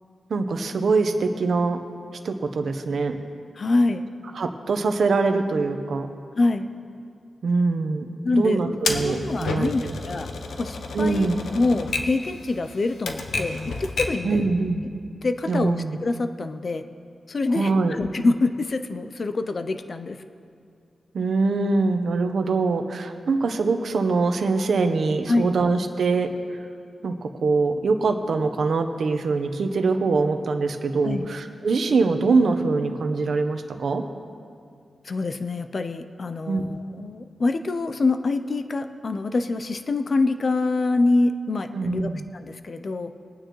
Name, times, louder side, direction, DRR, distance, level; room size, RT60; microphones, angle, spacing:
voice 1, 0.3-1.8 2.2-3.2 4.3-6.1 7.4-9.9 10.9-11.5 14.2-14.8 15.5-16.0 17.5-18.0 21.1-26.3 27.0-34.0 36.4-36.6 41.7-42.2, right 3 dB, 70° right, 6 dB, 0.9 m, -23 dB
voice 2, 3.6-4.1 6.4-6.7 8.2-8.6 8.9-10.3 10.6-11.3 11.5-14.5 15.2-16.8 17.3-20.2 25.3-25.5 31.0-31.3 35.0-43.1, left 3 dB, 45° left, 9 dB, 0.5 m, -25 dB
Typewriter, 8.8-14.3, left 3 dB, 85° left, 0.9 m, -31 dB
22.0 x 9.1 x 3.1 m, 2.3 s
wide cardioid pair, 105°, 0 cm